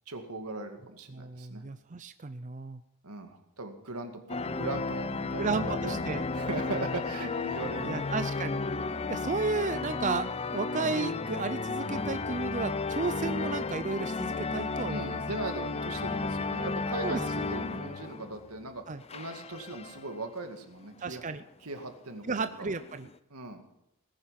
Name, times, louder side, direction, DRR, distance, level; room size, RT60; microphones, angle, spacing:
voice 1, 0.1-1.6 3.0-6.0 6.3-8.2 9.0-9.2 14.9-18.9 19.1-21.2 21.6-22.5 23.3-23.6, right 2 dB, 85° right, 6 dB, 2.3 m, -39 dB
voice 2, 1.1-2.8 5.3-6.2 7.9-8.6 9.1-15.2 17.0-17.2 18.9-19.0 21.0-21.4 22.2-23.1, right 4 dB, 35° right, 11 dB, 0.5 m, -33 dB
sound 1, 4.3-18.7 19.0-20.2 20.8-20.9 21.2-21.3 22.1-23.2, left 3 dB, 25° left, 0.6 m, -33 dB
18.5 x 10.5 x 5.8 m, 0.86 s
head